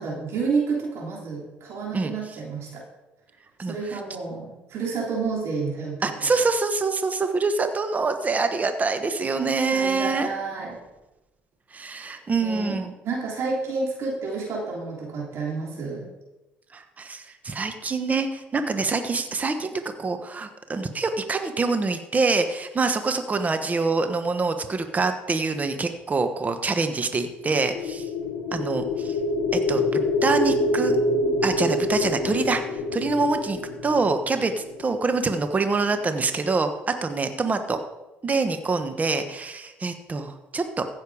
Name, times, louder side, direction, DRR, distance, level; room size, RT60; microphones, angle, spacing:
voice 1, 0.0-2.8 3.6-6.4 9.7-10.8 11.9-16.1, right 4 dB, 60° right, -3 dB, 3.3 m, -30 dB
voice 2, 3.6-4.0 6.0-10.3 11.7-12.9 16.7-19.7 20.0-28.1 28.5-29.2 29.5-31.0 31.4-32.6 32.9-37.8 38.2-40.8, right 3 dB, 30° right, 8 dB, 1.2 m, -25 dB
sound 1, 27.4-35.5, left 2 dB, 70° left, 1.0 m, -26 dB
15.0 x 6.6 x 4.9 m, 1.0 s
supercardioid pair, 70°, 5 cm